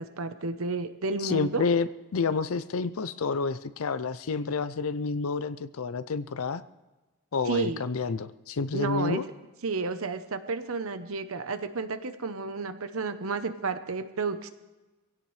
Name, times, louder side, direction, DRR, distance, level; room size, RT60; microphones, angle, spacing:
voice 1, 0.0-1.6 7.5-7.8 8.7-9.2 9.6-14.5, right 4 dB, 70° right, 10 dB, 0.8 m, -31 dB
voice 2, 1.2-6.6 7.3-9.2, left 4 dB, 70° left, 13 dB, 0.5 m, -29 dB
22.5 x 16.5 x 3.2 m, 1.1 s
head